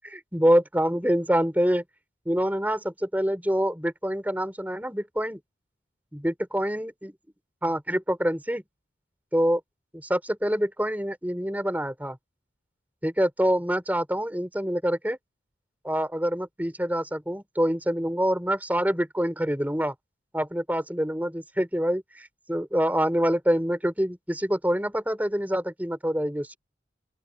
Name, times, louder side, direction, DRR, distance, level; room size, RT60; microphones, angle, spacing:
voice 1, 0.1-1.8 2.3-5.4 6.1-7.1 7.6-8.6 9.3-9.6 9.9-12.2 13.0-15.2 15.8-19.9 20.3-26.6, equal, 10° right, 5.2 m, -26 dB
open air
head